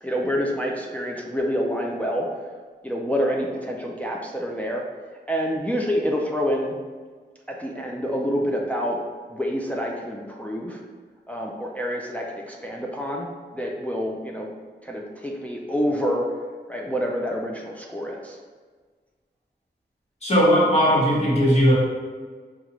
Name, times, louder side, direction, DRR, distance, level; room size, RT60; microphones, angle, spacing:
voice 1, 0.0-2.3 2.8-4.8 5.3-6.8 7.5-9.0 9.3-10.8 11.3-13.3 13.5-14.5 14.8-16.3 16.7-18.4, equal, 10° left, -1 dB, 0.4 m, -27 dB
voice 2, 20.2-21.7, equal, 35° left, -6 dB, 1.3 m, -18 dB
4.8 x 2.4 x 2.9 m, 1.5 s
wide cardioid pair, 90°, 18 cm